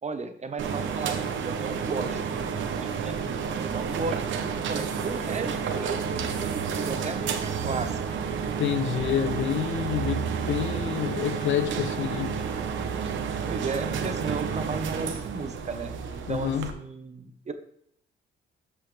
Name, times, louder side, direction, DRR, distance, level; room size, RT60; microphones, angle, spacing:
voice 1, 0.0-2.2 2.6-8.2 13.5-17.5, right 4 dB, 35° right, 1.1 m, -35 dB
sound 1, 0.6-16.7, right 6 dB, 75° right, 1.1 m, -30 dB
voice 2, 8.6-12.4 16.3-16.7, left 10 dB, 75° left, 0.7 m, -28 dB
13.5 x 5.7 x 3.4 m
cardioid pair, 90°, 20 cm